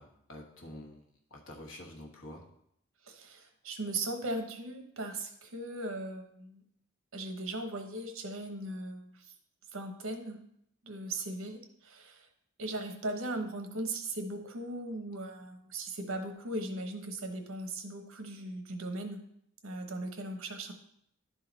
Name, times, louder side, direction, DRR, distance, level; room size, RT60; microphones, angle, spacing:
voice 1, 0.0-2.4, left 1 dB, 70° left, 0 dB, 1.4 m, -48 dB
voice 2, 3.1-6.6 7.1-9.1 9.7-10.4 10.8-12.2 12.6-19.2 19.6-20.7, right 2 dB, 80° right, 5 dB, 1.0 m, -38 dB
11.0 x 3.8 x 4.0 m, 0.73 s
head